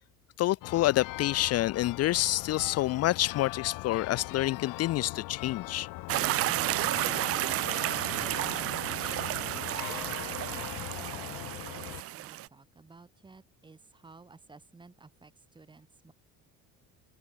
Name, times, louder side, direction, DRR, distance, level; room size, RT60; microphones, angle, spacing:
voice 1, 0.4-5.9, left 15 dB, 50° left, 0.6 m, -28 dB
sound 1, 0.6-12.0, left 22 dB, 75° left, 3.1 m, -40 dB
sound 2, 6.1-12.5, right 16 dB, 45° right, 0.5 m, -32 dB
voice 2, 10.1-16.1, right 3 dB, 15° right, 3.3 m, -55 dB
cardioid pair, 145°, 33 cm